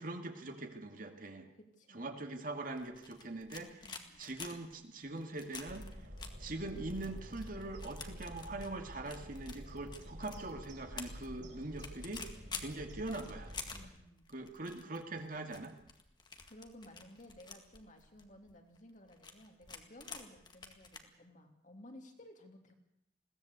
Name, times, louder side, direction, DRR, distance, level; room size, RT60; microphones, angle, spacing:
voice 1, 0.0-1.5 1.9-3.9 4.2-5.9 6.4-12.2 12.6-13.5 14.3-15.7, right 2 dB, 50° right, 5 dB, 2.3 m, -42 dB
voice 2, 1.8-2.2 3.8-4.2 12.4-12.9 13.7-14.3 16.5-22.7, left 1 dB, 45° left, 3 dB, 2.9 m, -56 dB
sound 1, 2.7-21.0, left 5 dB, 25° left, 1.9 m, -50 dB
sound 2, 5.7-13.9, equal, 70° right, 6.6 m, -49 dB
21.5 x 17.0 x 8.2 m, 0.80 s
head